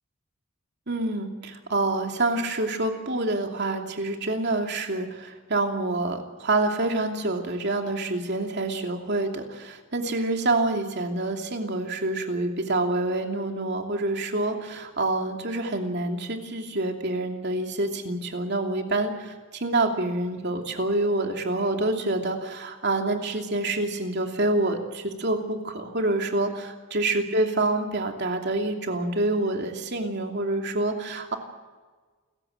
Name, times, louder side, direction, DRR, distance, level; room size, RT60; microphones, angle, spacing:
voice 1, 0.9-31.4, right 2 dB, 55° right, 3 dB, 2.9 m, -27 dB
29.0 x 15.0 x 7.8 m, 1.4 s
head